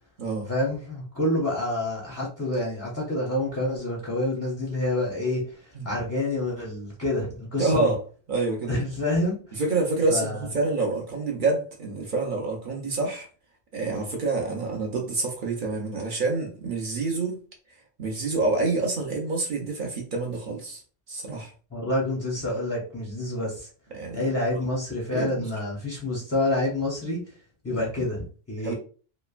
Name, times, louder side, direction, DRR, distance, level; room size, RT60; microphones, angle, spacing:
voice 1, 0.5-5.4 5.8-7.9 8.7-9.4 10.1-10.3 21.7-23.7 24.1-27.2 27.6-28.7, left 1 dB, 20° left, 0.4 m, -27 dB
voice 2, 7.6-8.0 8.3-8.8 9.5-13.3 13.7-17.4 18.0-20.8 21.1-21.5 23.9-24.2 25.1-25.5 27.7-27.8 28.6-28.7, right 3 dB, 55° right, 0.6 m, -27 dB
3.0 x 2.1 x 2.3 m
omnidirectional pair, 1.2 m